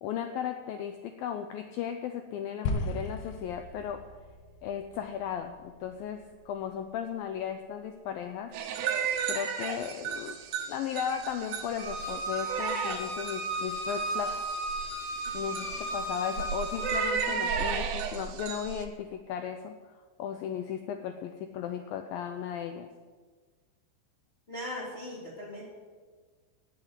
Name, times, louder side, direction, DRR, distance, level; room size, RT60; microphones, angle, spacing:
voice 1, 0.0-4.0 4.6-8.5 9.3-10.4 10.7-14.4 15.3-19.8 20.2-22.9, left 9 dB, 90° left, 7 dB, 2.0 m, -36 dB
sound 1, 2.7-7.0, left 2 dB, 70° left, 3.2 m, -38 dB
sound 2, 8.5-18.9, right 6 dB, 75° right, 3.2 m, -35 dB
Bowed string instrument, 11.8-17.0, right 2 dB, 55° left, 4.4 m, -35 dB
voice 2, 24.5-25.6, left 1 dB, 15° left, -5 dB, 2.9 m, -39 dB
18.5 x 7.8 x 8.1 m, 1.5 s
omnidirectional pair, 5.1 m